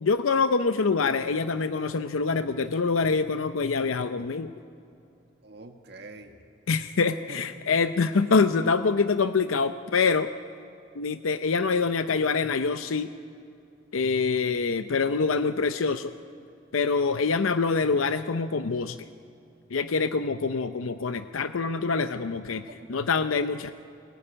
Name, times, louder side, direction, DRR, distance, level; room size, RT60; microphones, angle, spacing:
voice 1, 0.0-4.5 6.7-10.3 11.0-13.1 13.9-16.1 16.7-19.1 19.7-23.7, left 4 dB, 90° left, 10 dB, 0.6 m, -25 dB
voice 2, 5.4-6.4 7.0-7.5 22.5-23.0, right 2 dB, 55° right, 5 dB, 1.8 m, -46 dB
22.5 x 20.0 x 9.9 m, 2.6 s
head